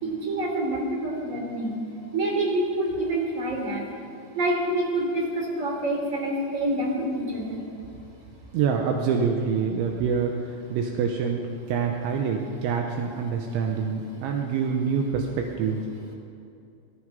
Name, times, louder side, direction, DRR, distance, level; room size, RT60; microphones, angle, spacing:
voice 1, 0.0-1.8 2.1-3.8 4.3-7.6, right 1 dB, 20° right, -1 dB, 2.2 m, -27 dB
voice 2, 8.5-15.8, right 6 dB, 80° right, 2 dB, 3.1 m, -26 dB
20.5 x 13.0 x 5.3 m, 2.6 s
omnidirectional pair, 5.7 m